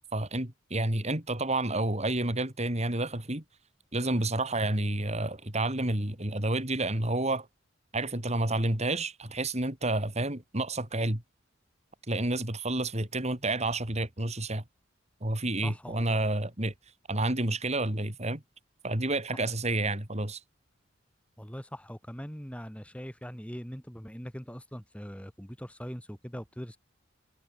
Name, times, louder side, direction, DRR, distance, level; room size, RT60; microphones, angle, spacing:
voice 1, 0.1-3.4 3.9-7.5 7.9-11.2 12.1-14.6 15.2-16.7 17.1-18.4 18.8-20.4, right 2 dB, 35° right, 3.7 m, -29 dB
voice 2, 15.6-16.2 21.4-26.8, equal, 5° left, 7.6 m, -41 dB
head